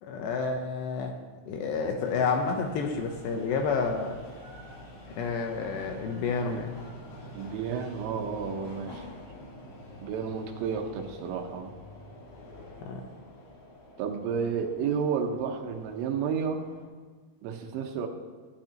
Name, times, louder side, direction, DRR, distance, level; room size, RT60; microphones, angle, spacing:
voice 1, 0.0-1.2 1.5-4.2 5.2-6.7 12.8-13.0, left 5 dB, 75° left, 3 dB, 2.6 m, -30 dB
sound 1, 2.0-16.8, left 1 dB, 55° left, 1.8 m, -47 dB
voice 2, 7.3-9.0 10.0-11.7 14.0-16.6 17.4-18.1, right 6 dB, 80° right, 4 dB, 3.4 m, -31 dB
15.5 x 12.0 x 2.9 m, 1.5 s
omnidirectional pair, 5.7 m